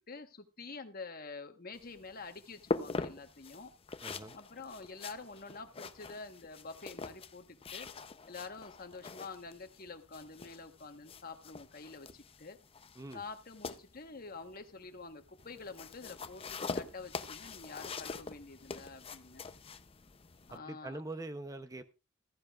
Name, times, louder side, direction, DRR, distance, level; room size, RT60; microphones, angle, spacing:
voice 1, 0.1-3.7 4.3-7.9 8.3-12.6 13.1-19.4 20.5-21.0, left 4 dB, 45° left, 7 dB, 1.2 m, -47 dB
sound 1, 1.7-20.6, left 3 dB, 30° left, 0.6 m, -44 dB
voice 2, 4.0-4.3 13.0-13.2 20.5-21.8, right 2 dB, 15° right, 9 dB, 0.7 m, -43 dB
15.0 x 14.5 x 2.4 m, 0.28 s
head